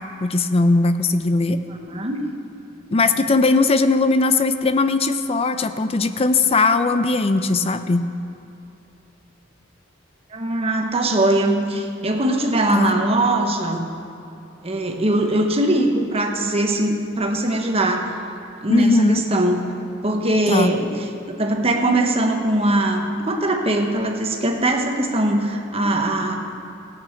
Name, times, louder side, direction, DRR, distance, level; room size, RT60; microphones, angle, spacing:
voice 1, 0.2-1.6 2.9-8.1 12.7-12.9 18.7-19.2 20.5-20.7, left 3 dB, 30° left, 10 dB, 0.5 m, -19 dB
voice 2, 1.7-2.2 10.3-13.9 14.6-18.1 18.6-19.6 20.0-26.3, right 1 dB, 30° right, 3 dB, 1.1 m, -21 dB
17.5 x 8.6 x 4.5 m, 2.7 s
head